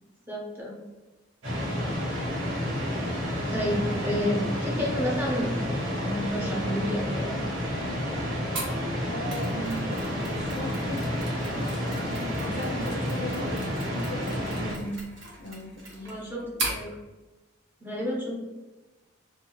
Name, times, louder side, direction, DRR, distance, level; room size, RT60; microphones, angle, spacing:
voice 1, 0.3-0.8 3.5-5.5 6.0-7.4 16.0-16.4 16.7-16.9 17.8-18.4, equal, 10° right, -5 dB, 0.7 m, -30 dB
sound 1, 1.4-14.7, equal, 90° right, 1.1 m, -30 dB
Mechanisms, 8.5-16.8, right 2 dB, 60° right, 0.8 m, -39 dB
voice 2, 9.1-11.0 11.5-13.6 13.9-15.0 15.4-16.5, equal, 50° left, 1 dB, 0.4 m, -38 dB
2.7 x 2.3 x 2.9 m, 1.1 s
head